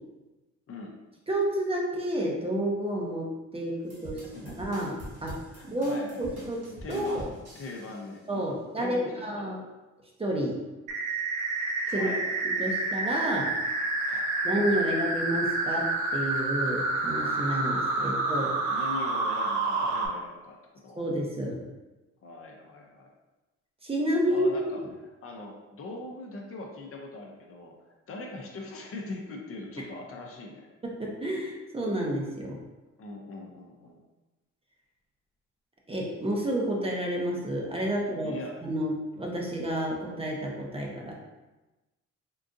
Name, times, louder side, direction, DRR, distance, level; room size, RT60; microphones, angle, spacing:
voice 1, 1.3-5.4 5.6-6.6 6.9-7.2 8.3-9.6 10.2-10.6 11.9-12.1 12.4-13.5 14.4-18.5 21.0-21.6 23.8-24.6 30.8-32.6 35.9-38.4 38.6-41.1, right 1 dB, 20° right, -2 dB, 0.6 m, -30 dB
sound 1, 3.9-8.0, equal, 50° right, 1.3 m, -44 dB
voice 2, 4.2-4.7 5.5-6.3 6.8-7.2 7.5-9.5 11.8-12.9 14.0-14.6 17.9-18.2 18.7-20.6 20.8-21.0 22.2-23.1 24.3-30.7 33.0-34.0 37.9-38.5, left 2 dB, 45° left, 0 dB, 0.6 m, -41 dB
sound 2, 10.9-20.1, right 3 dB, 75° right, 0.6 m, -29 dB
3.7 x 2.5 x 2.5 m, 1.1 s
cardioid pair, 90°, 30 cm